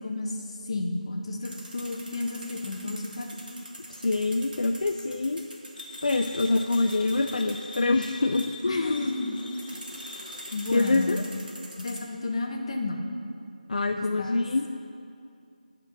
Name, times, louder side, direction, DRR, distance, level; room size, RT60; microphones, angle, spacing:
voice 1, 0.0-3.3 8.6-9.4 9.7-9.8 10.5-11.1 11.8-13.0 13.9-14.4, left 2 dB, 40° left, 2 dB, 0.9 m, -32 dB
sound 1, 1.4-12.0, right 1 dB, 85° right, 1.7 m, -45 dB
voice 2, 3.9-5.4 6.0-9.1 10.7-11.2 13.7-14.7, left 3 dB, 60° left, 5 dB, 0.4 m, -25 dB
sound 2, 5.8-10.9, left 2 dB, 75° left, 0.9 m, -43 dB
9.4 x 4.4 x 6.1 m, 2.5 s
figure-of-eight pair, 170°, 5 cm